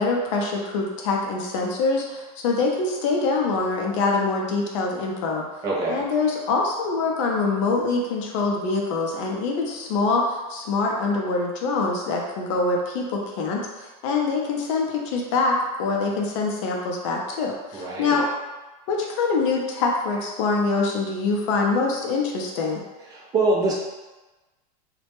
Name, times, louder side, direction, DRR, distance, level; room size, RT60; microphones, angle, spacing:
voice 1, 0.0-5.4 5.9-18.3 18.9-22.8, left 3 dB, 55° left, 0 dB, 0.5 m, -24 dB
voice 2, 5.6-6.0 17.7-18.2 23.1-23.7, right 2 dB, 20° right, -5 dB, 0.4 m, -24 dB
2.2 x 2.0 x 2.9 m, 1.1 s
supercardioid pair, 160°, 19 cm